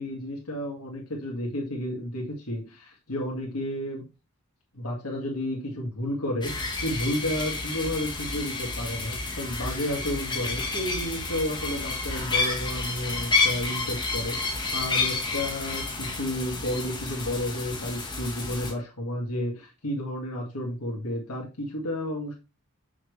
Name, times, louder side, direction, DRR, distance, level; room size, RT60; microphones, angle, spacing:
voice 1, 0.0-4.1 4.7-22.3, left 1 dB, 85° left, -1 dB, 2.2 m, -32 dB
sound 1, 6.4-18.7, left 3 dB, 20° left, 1.5 m, -30 dB
6.6 x 6.1 x 3.3 m, 0.29 s
head